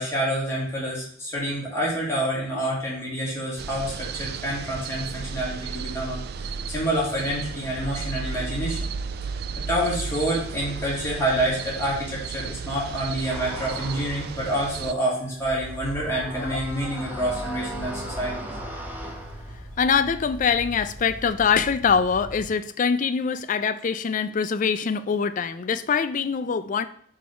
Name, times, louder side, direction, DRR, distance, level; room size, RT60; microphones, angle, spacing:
voice 1, 0.0-8.8 9.7-18.5, right 1 dB, 15° left, -6 dB, 2.4 m, -27 dB
sound 1, 3.6-14.9, right 5 dB, 50° right, 0.3 m, -34 dB
sound 2, 13.2-19.6, equal, 10° right, 0.8 m, -39 dB
sound 3, 14.0-22.5, equal, 80° right, 1.5 m, -40 dB
voice 2, 19.8-26.8, left 6 dB, 40° left, 13 dB, 0.4 m, -24 dB
4.7 x 4.3 x 5.5 m, 0.62 s
head